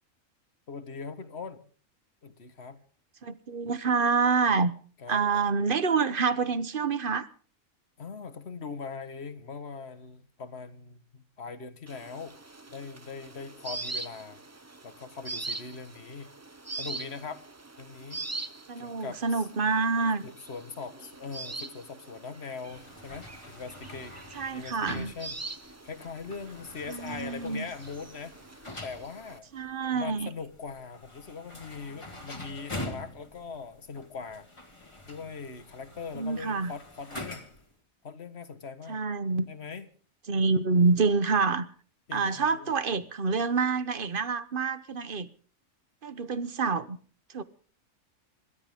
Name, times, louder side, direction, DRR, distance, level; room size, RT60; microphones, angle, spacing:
voice 1, 0.7-1.7 2.2-2.8 5.0-5.2 8.0-12.4 12.7-14.4 14.8-16.3 16.8-17.4 17.8-18.2 18.8-19.5 20.2-24.2 24.5-28.4 28.8-29.5 29.9-34.5 35.0-37.5 38.0-39.0 39.5-39.9 42.1-42.8, left 5 dB, 50° left, 1.6 m, -41 dB
voice 2, 3.2-4.7 5.1-7.3 18.7-20.2 24.3-25.1 26.9-27.6 29.5-30.3 36.1-36.7 38.9-39.5 40.3-41.7 42.1-45.3 46.0-47.0 47.3-47.4, right 4 dB, 45° right, 1.1 m, -27 dB
sound 1, 11.9-29.4, right 3 dB, 20° right, 0.5 m, -43 dB
sound 2, 22.7-37.7, left 1 dB, 20° left, 2.0 m, -45 dB
26.5 x 13.0 x 3.6 m
omnidirectional pair, 1.4 m